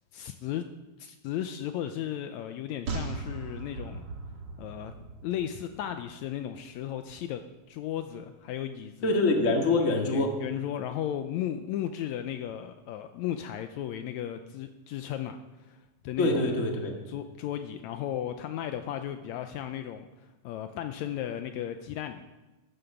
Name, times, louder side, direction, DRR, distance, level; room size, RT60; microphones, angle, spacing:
voice 1, 0.1-0.7 1.0-4.1 4.6-7.4 7.7-9.2 10.0-16.5 17.1-22.2, left 10 dB, 85° left, 8 dB, 1.6 m, -35 dB
sound 1, 2.9-6.3 6.6-6.7, right 3 dB, 50° right, 1.4 m, -38 dB
voice 2, 9.0-10.4 16.2-17.0, left 2 dB, 35° left, 2 dB, 1.5 m, -25 dB
12.5 x 9.2 x 6.8 m, 1.1 s
omnidirectional pair, 3.8 m